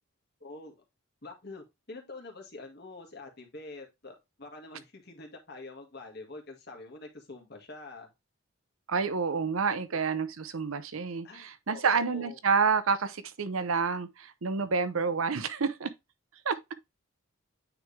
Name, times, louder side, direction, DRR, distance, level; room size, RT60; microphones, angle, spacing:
voice 1, 0.4-0.7 1.2-8.1 9.9-10.0 11.2-12.4, left 2 dB, 50° left, 1.8 m, -46 dB
voice 2, 8.9-15.9 16.5-16.6, right 5 dB, 75° right, 0.7 m, -29 dB
9.1 x 3.6 x 3.3 m
head